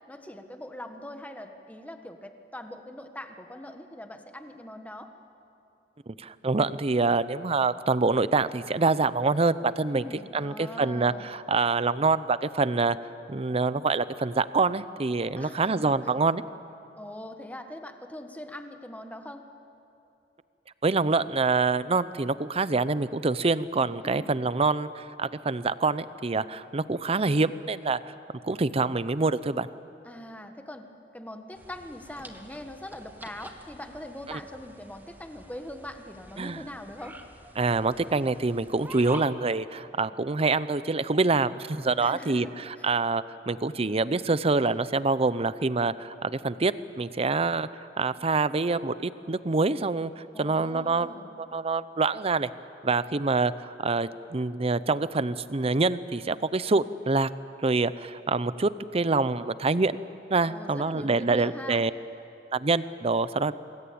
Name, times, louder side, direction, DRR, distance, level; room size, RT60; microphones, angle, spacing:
voice 1, 0.1-5.1 9.9-11.3 15.4-15.9 16.9-19.4 24.0-24.3 30.0-30.9 31.1-37.2 42.0-42.9 50.3-51.3 60.5-61.8, left 1 dB, 10° left, 6 dB, 1.5 m, -42 dB
voice 2, 6.1-10.0 10.3-13.0 13.3-16.4 20.8-28.0 28.4-29.7 34.3-34.4 36.4-36.6 37.6-47.7 48.0-51.1 51.4-52.5 52.8-57.3 57.6-60.0 60.3-61.9 62.5-63.5, right 3 dB, 35° right, 15 dB, 0.7 m, -26 dB
sound 1, 31.5-39.2, right 1 dB, 10° right, 1.6 m, -48 dB
26.5 x 21.5 x 8.7 m, 2.7 s
head